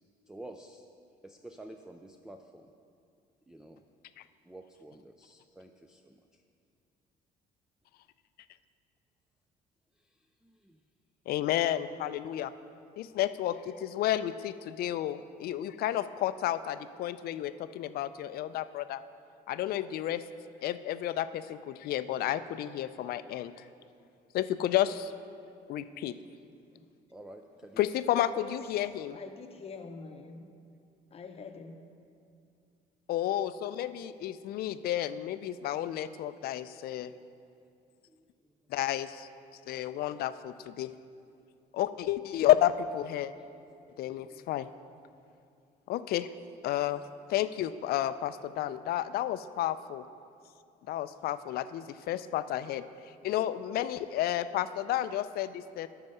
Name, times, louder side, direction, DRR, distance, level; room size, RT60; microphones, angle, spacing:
voice 1, 0.3-0.8 1.2-2.0 2.3-2.4 3.5-3.8 4.5-5.7 27.1-27.8, right 1 dB, 5° right, 5 dB, 0.3 m, -48 dB
voice 2, 11.3-12.5 13.0-19.0 19.5-20.2 20.6-23.5 24.3-25.1 25.7-26.1 27.8-29.2 33.1-37.1 38.7-39.3 39.7-40.9 41.7-43.3 44.0-44.7 45.9-46.3 46.6-47.0 47.3-50.0 50.9-52.8 53.2-55.9, left 12 dB, 65° left, 14 dB, 0.4 m, -31 dB
voice 3, 28.3-30.5 31.1-32.0, left 4 dB, 35° left, 6 dB, 0.7 m, -46 dB
13.0 x 4.7 x 5.4 m, 2.5 s
cardioid pair, 110°, 17 cm